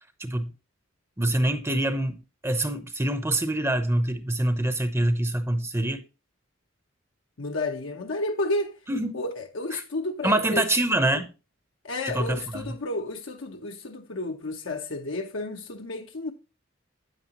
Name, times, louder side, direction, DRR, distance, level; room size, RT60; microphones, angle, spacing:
voice 1, 0.2-0.5 1.2-6.0 8.9-9.2 9.7-9.8 10.2-11.3 12.1-12.6, right 1 dB, 15° right, 0.8 m, -25 dB
voice 2, 7.4-8.8 9.1-10.7 11.8-16.3, left 2 dB, 70° left, 0.9 m, -31 dB
9.3 x 8.8 x 2.9 m
head